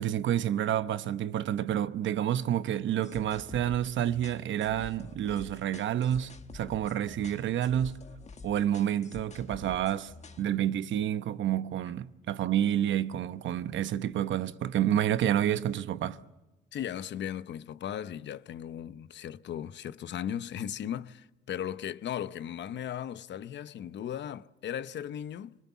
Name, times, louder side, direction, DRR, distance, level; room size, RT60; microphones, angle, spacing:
voice 1, 0.0-8.0 8.4-10.1 10.4-16.2, right 11 dB, 70° right, 0.9 m, -29 dB
sound 1, 3.0-10.4, left 4 dB, 35° left, 1.6 m, -48 dB
voice 2, 16.7-25.6, left 10 dB, 65° left, 0.8 m, -37 dB
26.0 x 20.5 x 7.2 m
cardioid pair, 90°, 20 cm